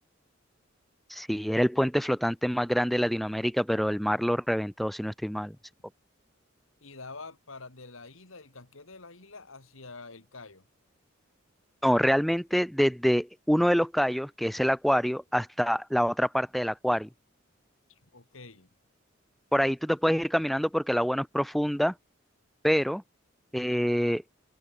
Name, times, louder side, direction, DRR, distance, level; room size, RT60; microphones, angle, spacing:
voice 1, 1.1-5.6 11.8-17.1 19.5-21.9 22.6-23.0 23.5-24.2, equal, ahead, 0.5 m, -26 dB
voice 2, 6.8-10.7 17.9-18.7, left 3 dB, 85° left, 3.0 m, -46 dB
head